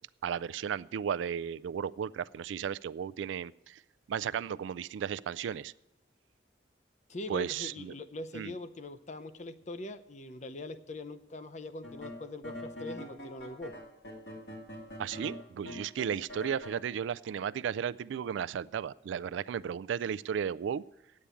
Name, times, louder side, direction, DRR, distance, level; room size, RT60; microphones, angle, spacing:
voice 1, 0.2-3.8 4.1-5.7 7.3-7.9 8.3-8.5 15.0-20.8, right 8 dB, 85° right, 18 dB, 0.3 m, -34 dB
voice 2, 7.1-13.7, left 2 dB, 40° left, 9 dB, 0.6 m, -42 dB
sound 1, 11.8-16.8, left 1 dB, 70° left, 2.2 m, -44 dB
8.9 x 8.5 x 8.3 m, 0.95 s
head